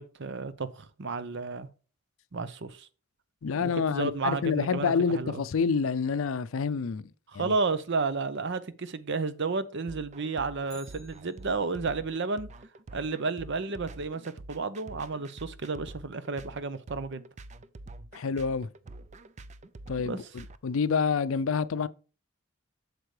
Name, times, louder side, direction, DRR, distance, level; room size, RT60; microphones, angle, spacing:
voice 1, 0.0-1.7 2.3-2.9 3.6-5.4 7.3-12.5 12.9-17.2 20.1-20.2, right 4 dB, 55° right, 0.7 m, -32 dB
voice 2, 3.4-7.5 18.1-18.7 19.9-21.9, left 5 dB, 70° left, 0.4 m, -28 dB
sound 1, 9.9-20.6, right 2 dB, 35° right, 0.4 m, -46 dB
Bicycle, 10.6-12.0 20.3-20.4, left 2 dB, 5° left, 2.7 m, -55 dB
8.0 x 6.7 x 3.2 m
head